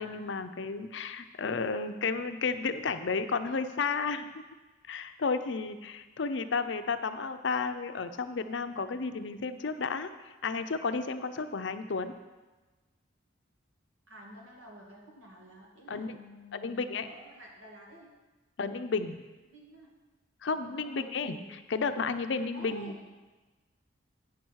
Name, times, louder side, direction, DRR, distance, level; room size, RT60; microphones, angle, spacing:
voice 1, 0.0-4.3 4.9-10.1 10.4-12.1 15.9-16.2 16.5-17.1 18.6-19.2 20.4-21.4 21.7-23.0, left 4 dB, 70° left, 10 dB, 0.5 m, -32 dB
voice 2, 14.1-18.1 19.4-19.9 20.5-21.5 22.5-23.0, equal, 90° right, -1 dB, 2.1 m, -50 dB
8.7 x 6.0 x 6.3 m, 1.2 s
head